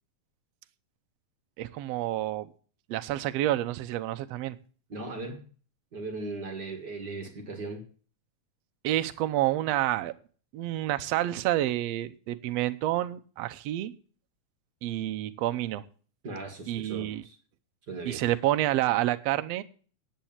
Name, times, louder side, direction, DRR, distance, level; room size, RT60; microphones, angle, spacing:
voice 1, 1.6-2.5 2.9-4.6 8.8-10.1 10.5-13.9 14.8-15.8 16.7-17.2 18.1-19.6, right 14 dB, 70° right, 1.8 m, -28 dB
voice 2, 4.9-5.4 5.9-7.9 16.2-17.4 17.9-18.2, right 3 dB, 40° right, 2.0 m, -38 dB
10.5 x 8.9 x 7.2 m
omnidirectional pair, 3.3 m